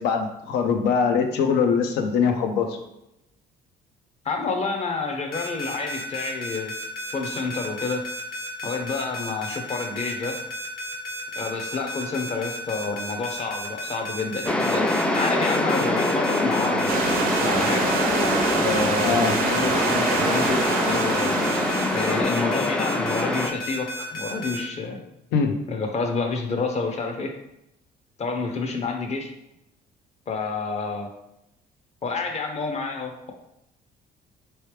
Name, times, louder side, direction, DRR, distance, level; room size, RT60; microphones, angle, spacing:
voice 1, 0.0-2.8 19.0-19.3 25.3-25.6, left 6 dB, 85° left, 5 dB, 0.6 m, -22 dB
voice 2, 4.2-6.7 7.1-8.0 8.6-10.4 11.4-14.9 15.1-16.9 17.4-17.9 18.6-21.3 21.9-25.0 25.7-27.3 28.2-29.3 30.3-31.1 32.0-33.3, left 4 dB, 40° left, 3 dB, 0.7 m, -29 dB
sound 1, 5.3-24.6, left 1 dB, 65° left, 1.1 m, -33 dB
sound 2, 14.5-23.5, left 1 dB, 5° left, 0.3 m, -24 dB
Stream / Liquid, 16.9-22.2, right 5 dB, 60° right, 0.5 m, -27 dB
3.2 x 3.1 x 3.2 m, 0.84 s
cardioid pair, 110°, 17 cm